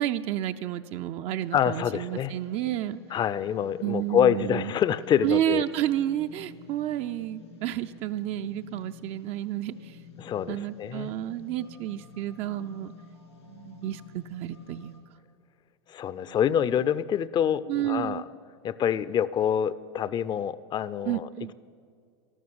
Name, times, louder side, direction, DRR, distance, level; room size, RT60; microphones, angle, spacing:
voice 1, 0.0-3.0 3.8-4.7 5.2-9.9 10.5-12.9 13.5-15.0 17.7-18.2 21.1-21.5, right 12 dB, 45° right, 9 dB, 0.5 m, -30 dB
sound 1, 1.4-15.0, left 6 dB, 85° left, 3.2 m, -51 dB
voice 2, 1.5-2.3 3.1-5.6 10.2-11.1 15.9-18.2 18.6-21.5, left 9 dB, 30° left, 17 dB, 0.5 m, -26 dB
12.5 x 12.5 x 7.8 m, 2.2 s
hypercardioid pair, 95°, 14 cm